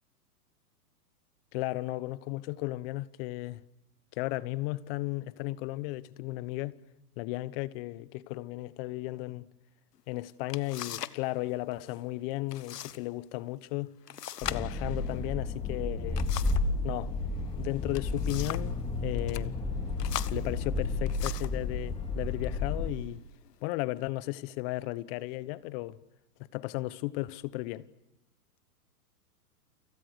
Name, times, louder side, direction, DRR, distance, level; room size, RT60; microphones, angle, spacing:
voice 1, 1.5-3.6 4.2-6.8 7.2-9.5 10.1-13.9 14.4-16.3 16.8-17.2 17.5-19.5 20.3-23.2 23.6-26.0 26.5-27.8, left 19 dB, 40° left, 1.2 m, -35 dB
sound 1, 10.0-10.1 10.5-11.2 11.5-12.0 12.5-13.0 13.3-13.4 14.1-16.7 17.7-18.8 19.2-19.5 20.0-21.6 22.4-22.6 23.1-23.6, left 11 dB, 85° left, 1.3 m, -40 dB
sound 2, 14.4-22.9, left 3 dB, 10° left, 4.3 m, -32 dB
30.0 x 26.0 x 6.5 m
hypercardioid pair, 135°, 47 cm